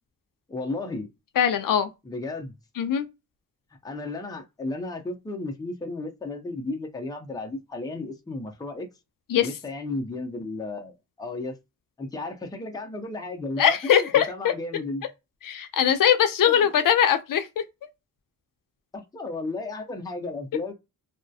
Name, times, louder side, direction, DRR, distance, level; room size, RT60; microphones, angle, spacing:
voice 1, 0.5-1.1 2.1-2.6 3.8-8.9 9.4-11.6 12.0-15.0 16.5-16.7 18.9-20.7, left 2 dB, 10° left, 0.5 m, -34 dB
voice 2, 1.4-1.9 2.8-3.1 9.3-9.5 13.6-14.5 15.4-17.6, left 9 dB, 70° left, 0.5 m, -21 dB
2.3 x 2.0 x 2.6 m
wide cardioid pair, 160°, 35 cm